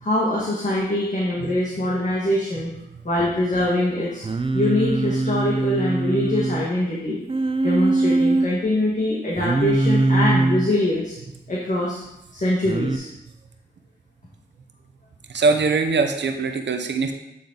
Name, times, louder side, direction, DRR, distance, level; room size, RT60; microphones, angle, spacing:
voice 1, 0.0-2.7 3.0-4.2 4.5-7.2 7.6-11.2 11.5-12.0 12.3-13.1, left 1 dB, 45° left, -5 dB, 1.5 m, -23 dB
Singing, 4.2-6.7 7.3-8.5 9.4-10.7 12.6-13.0, right 2 dB, 30° right, 0.5 m, -21 dB
voice 2, 15.3-17.1, right 4 dB, 80° right, 6 dB, 0.8 m, -22 dB
8.7 x 3.8 x 3.9 m, 0.89 s
cardioid pair, 45°, 18 cm